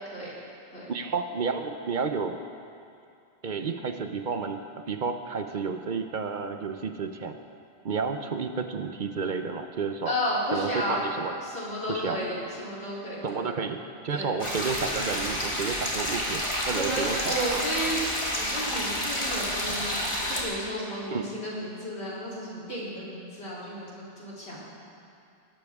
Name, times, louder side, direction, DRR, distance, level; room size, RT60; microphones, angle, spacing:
voice 1, 0.9-2.4 3.4-7.4 7.8-10.2 10.5-11.3 11.9-12.2 13.2-17.7 21.1-21.3, right 5 dB, 55° right, 7 dB, 0.8 m, -31 dB
voice 2, 10.1-11.1 11.4-13.5 14.1-14.3 16.7-24.7, equal, 85° left, -7 dB, 3.7 m, -33 dB
sound 1, 14.4-20.4, equal, 30° left, 2.0 m, -29 dB
19.0 x 12.5 x 3.6 m, 2.5 s
omnidirectional pair, 1.1 m